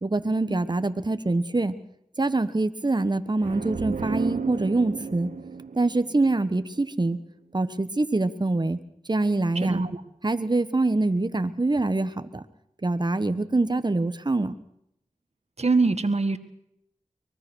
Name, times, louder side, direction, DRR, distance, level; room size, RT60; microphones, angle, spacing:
voice 1, 0.0-1.8 2.2-5.3 5.7-7.2 7.5-8.8 9.1-9.8 10.2-12.4 12.8-14.6, right 2 dB, 35° right, 11 dB, 1.3 m, -25 dB
sound 1, 3.4-7.1, right 5 dB, 85° right, 0.9 m, -34 dB
voice 2, 9.6-10.0 15.6-16.4, right 3 dB, 55° right, 10 dB, 1.8 m, -23 dB
24.0 x 20.0 x 6.3 m, 0.76 s
cardioid pair, 40°, 13 cm